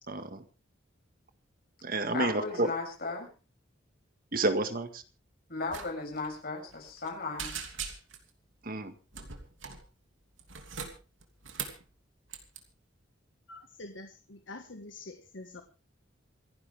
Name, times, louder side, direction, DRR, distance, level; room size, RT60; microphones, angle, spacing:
voice 1, 0.1-0.4 1.8-2.7 4.3-5.0 8.6-8.9, right 2 dB, 50° right, 9 dB, 1.8 m, -30 dB
voice 2, 2.1-3.3 5.5-7.5, left 3 dB, 50° left, 1 dB, 7.3 m, -36 dB
sound 1, 5.7-5.9 6.1-6.3 6.7-7.1 7.4-8.3 9.1-9.8 10.4-11.8 12.3-12.6, right 6 dB, 85° right, 2.9 m, -40 dB
voice 3, 13.5-15.6, left 2 dB, 70° left, 5 dB, 1.7 m, -46 dB
27.5 x 10.5 x 3.6 m, 0.33 s
head